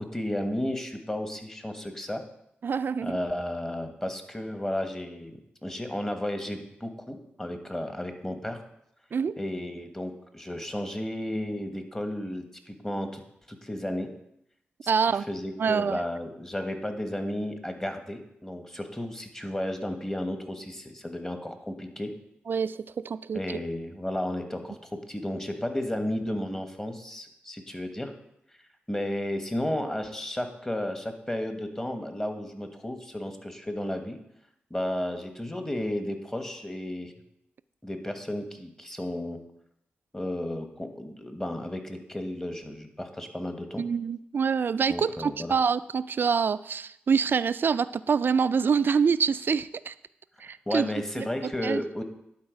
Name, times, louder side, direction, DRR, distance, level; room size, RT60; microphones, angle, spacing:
voice 1, 0.0-2.2 3.0-8.6 9.4-13.2 13.5-14.1 14.8-22.1 23.3-28.1 28.9-34.2 34.7-37.1 37.8-39.4 40.1-43.8 44.9-45.5 50.7-52.0, left 1 dB, 15° left, 6 dB, 1.3 m, -33 dB
voice 2, 2.6-3.2 9.1-9.4 14.9-15.3 15.6-16.0 22.5-23.4 43.8-49.9 50.4-50.9 51.2-51.8, right 6 dB, 60° right, 15 dB, 0.3 m, -26 dB
11.0 x 4.1 x 5.1 m, 0.78 s
cardioid pair, 55°, 4 cm